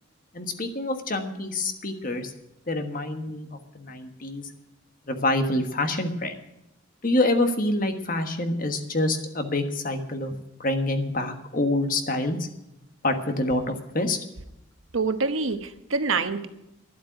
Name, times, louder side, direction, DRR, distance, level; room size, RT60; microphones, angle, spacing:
voice 1, 0.3-2.3 2.7-4.5 5.1-6.3 7.0-12.5 13.0-14.2, left 2 dB, 40° left, 7 dB, 1.4 m, -26 dB
voice 2, 14.9-16.5, right 4 dB, 80° right, 9 dB, 1.1 m, -26 dB
12.0 x 8.0 x 9.2 m, 0.87 s
head